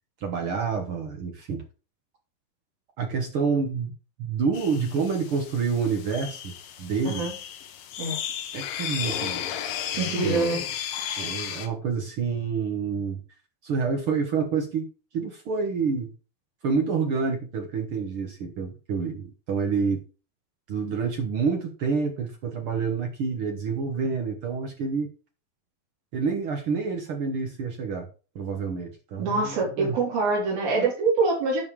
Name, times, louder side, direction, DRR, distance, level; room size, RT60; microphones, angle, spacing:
voice 1, 0.2-1.6 3.0-3.9 4.2-6.5 6.8-7.3 8.5-9.4 9.9-10.7 11.2-13.2 13.6-14.9 15.1-16.1 16.6-20.0 20.7-25.1 26.1-28.1 28.3-29.9, right 5 dB, 70° right, 4 dB, 1.3 m, -28 dB
sound 1, 4.5-11.7, left 10 dB, 75° left, 2.7 m, -34 dB
voice 2, 10.0-10.6 29.2-31.6, right 3 dB, 85° right, -2 dB, 5.1 m, -25 dB
10.5 x 5.5 x 4.8 m, 0.35 s
omnidirectional pair, 4.1 m